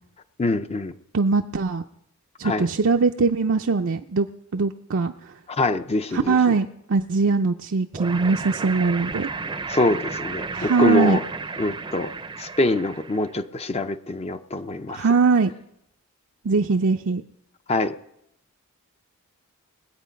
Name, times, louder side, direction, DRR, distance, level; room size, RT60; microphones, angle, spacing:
voice 1, 0.4-0.9 2.4-2.7 5.5-6.6 9.7-11.2 11.6-12.1 12.4-15.1 17.7-18.0, left 2 dB, 30° left, 10 dB, 0.6 m, -24 dB
voice 2, 1.1-1.8 2.4-4.3 4.5-5.1 6.1-9.3 10.5-11.2 14.9-15.5 16.4-17.2, right 4 dB, 60° right, 3 dB, 0.5 m, -21 dB
sound 1, 7.9-13.4, right 4 dB, 20° right, 0.6 m, -33 dB
21.0 x 8.3 x 5.2 m, 0.78 s
head